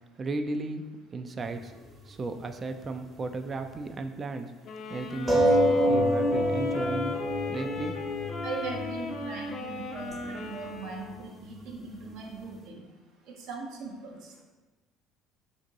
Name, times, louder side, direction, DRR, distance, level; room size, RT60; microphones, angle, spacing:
voice 1, 0.2-1.7 2.1-4.5 4.9-7.2 7.5-8.0, right 3 dB, 35° right, 8 dB, 0.3 m, -35 dB
sound 1, 1.4-1.6 1.9-2.0 5.3-10.3 10.7-10.8 11.0-11.1 11.4-11.6 11.9-12.0, equal, 20° right, 0.8 m, -27 dB
sound 2, 4.6-11.2, left 4 dB, 55° left, 0.4 m, -37 dB
voice 2, 8.4-12.8 13.5-14.4, right 4 dB, 65° right, 0 dB, 0.6 m, -39 dB
2.6 x 2.5 x 4.0 m, 1.2 s
hypercardioid pair, 60°, 0 cm